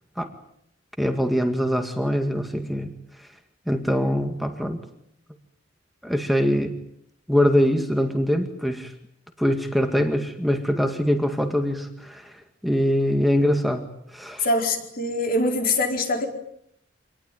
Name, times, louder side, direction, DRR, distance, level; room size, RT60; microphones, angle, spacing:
voice 1, 1.0-2.9 3.2-3.3 3.7-4.8 6.0-6.8 7.3-8.9 9.4-14.5, equal, ahead, 4 dB, 2.1 m, -23 dB
voice 2, 14.4-16.3, left 2 dB, 50° left, 3 dB, 4.5 m, -23 dB
26.0 x 20.0 x 9.3 m, 0.73 s
head